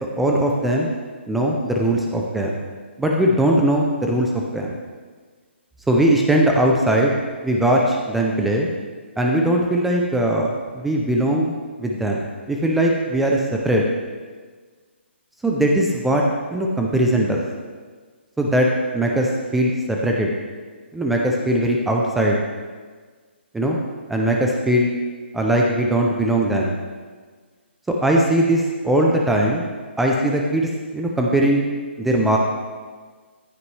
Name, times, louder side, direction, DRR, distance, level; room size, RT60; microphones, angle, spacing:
voice 1, 0.2-0.9 1.3-2.6 3.0-4.7 5.9-7.1 7.4-8.7 9.2-11.5 11.8-13.8 15.4-16.2 16.5-17.4 18.4-18.7 18.9-20.3 20.9-22.4 23.5-23.8 24.1-24.9 25.3-26.7 27.9-29.7 30.0-31.6 32.0-32.4, right 1 dB, ahead, -1 dB, 0.3 m, -20 dB
14.5 x 9.7 x 3.2 m, 1.5 s
hypercardioid pair, 175°, 7 cm